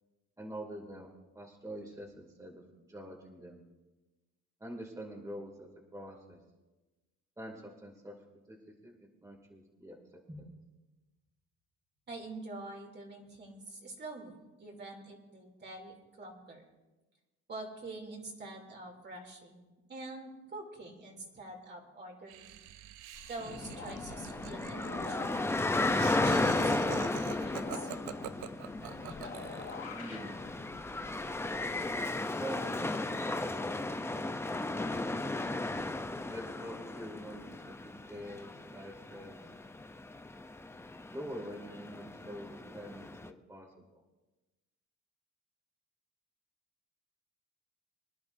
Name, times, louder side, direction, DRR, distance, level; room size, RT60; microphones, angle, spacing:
voice 1, 0.4-1.1 1.3-3.6 4.6-6.4 7.4-8.2 8.5-8.6 8.8-10.5 29.9-30.4 32.4-34.2 34.5-35.3 36.3-39.4 41.1-44.0, equal, 10° right, -1 dB, 2.5 m, -46 dB
voice 2, 12.1-16.7 17.5-22.6 23.3-25.5 25.9-27.9, right 2 dB, 35° right, 0 dB, 3.0 m, -46 dB
Laughter, 22.3-29.9, right 12 dB, 85° right, 0.7 m, -46 dB
sound 1, 23.1-32.0, left 4 dB, 45° left, 3.3 m, -47 dB
sound 2, 23.4-43.3, left 2 dB, 10° left, 0.6 m, -35 dB
25.0 x 11.0 x 2.7 m, 1.1 s
cardioid pair, 110°, 30 cm